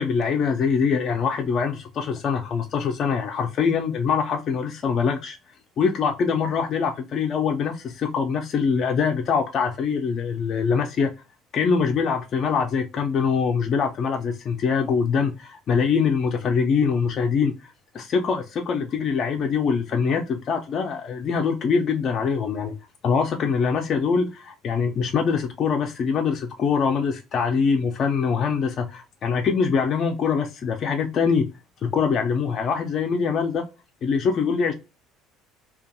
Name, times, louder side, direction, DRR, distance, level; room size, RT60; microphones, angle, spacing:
voice 1, 0.0-5.4 5.8-11.1 11.5-22.7 23.0-31.5 31.8-33.7 34.0-34.7, left 6 dB, 50° left, 0.3 m, -23 dB
2.5 x 2.2 x 2.6 m
hypercardioid pair, 65°, 0 cm